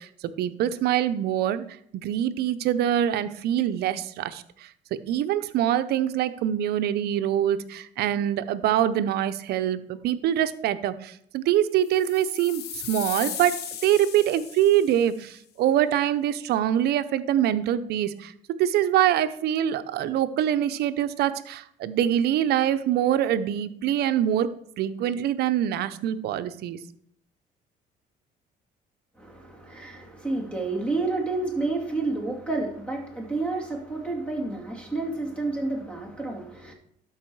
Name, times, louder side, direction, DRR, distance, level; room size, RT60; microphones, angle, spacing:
voice 1, 0.0-1.6 2.0-4.7 5.1-13.6 13.8-26.8, right 11 dB, 70° right, 12 dB, 0.6 m, -24 dB
sound 1, 11.9-15.1, left 9 dB, 75° left, 1.1 m, -36 dB
voice 2, 29.2-36.7, right 3 dB, 5° left, 1 dB, 2.3 m, -30 dB
12.0 x 4.8 x 4.6 m, 0.67 s
cardioid pair, 110°, 17 cm